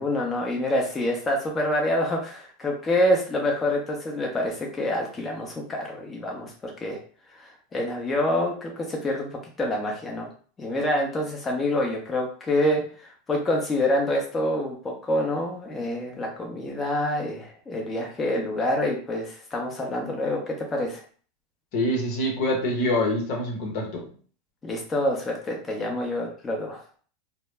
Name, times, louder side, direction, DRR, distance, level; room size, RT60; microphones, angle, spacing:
voice 1, 0.0-7.0 7.3-9.3 9.6-10.3 10.6-21.0 24.6-26.8, left 1 dB, 20° left, 0 dB, 0.6 m, -27 dB
voice 2, 21.7-24.0, left 1 dB, 65° left, 1 dB, 0.9 m, -25 dB
2.1 x 2.0 x 3.3 m, 0.43 s
hypercardioid pair, 100°, 0 cm